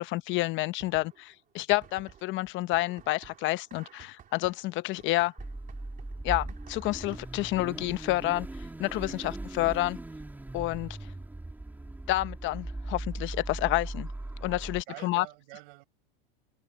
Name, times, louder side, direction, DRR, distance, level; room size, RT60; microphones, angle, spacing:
voice 1, 0.0-5.3 6.2-8.5 8.8-10.0 10.5-11.0 12.1-14.1 14.4-15.2, left 18 dB, 40° left, 0.9 m, -29 dB
sound 1, 0.8-1.4 1.7-8.2, right 9 dB, 30° right, 3.4 m, -55 dB
Car / Idling / Accelerating revving vroom, 5.4-14.8, right 2 dB, 5° right, 2.8 m, -39 dB
voice 2, 14.5-15.8, right 26 dB, 65° right, 5.4 m, -48 dB
supercardioid pair, 130°, 29 cm